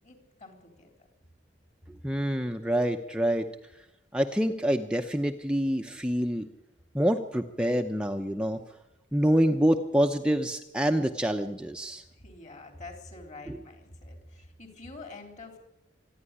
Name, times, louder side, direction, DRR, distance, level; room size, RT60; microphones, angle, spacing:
voice 1, 0.0-0.9 12.1-15.6, left 3 dB, 40° left, 5 dB, 3.9 m, -46 dB
voice 2, 2.0-3.5 4.1-6.5 6.9-8.6 9.1-12.0 13.5-13.6, equal, 5° right, 4 dB, 0.7 m, -26 dB
25.5 x 10.5 x 9.9 m, 0.92 s
head